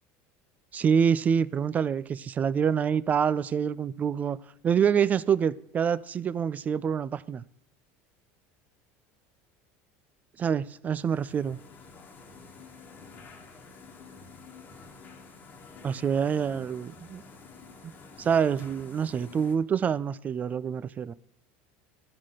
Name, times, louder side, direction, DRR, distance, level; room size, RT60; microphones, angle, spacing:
voice 1, 0.7-4.4 4.6-7.4 10.4-11.6 15.8-17.2 17.8-17.9 18.2-21.1, right 7 dB, 25° right, 0.3 m, -26 dB
sound 1, 11.0-19.5, left 4 dB, 30° left, 1.4 m, -49 dB
12.0 x 4.1 x 6.3 m
supercardioid pair, 125°, 6 cm